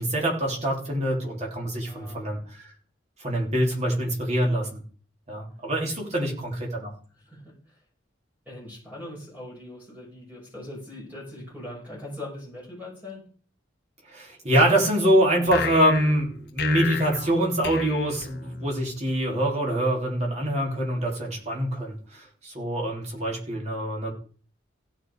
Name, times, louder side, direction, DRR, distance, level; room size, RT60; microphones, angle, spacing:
voice 1, 0.0-2.7 3.2-4.8 5.3-6.9 14.1-24.1, right 1 dB, 35° right, -1 dB, 3.5 m, -25 dB
voice 2, 1.8-2.4 6.1-6.5 7.1-7.8 8.5-13.2 19.1-19.4, left 1 dB, 10° right, -5 dB, 5.8 m, -41 dB
sound 1, 15.5-18.9, left 6 dB, 55° left, 1.2 m, -33 dB
15.5 x 6.8 x 4.8 m, 0.43 s
head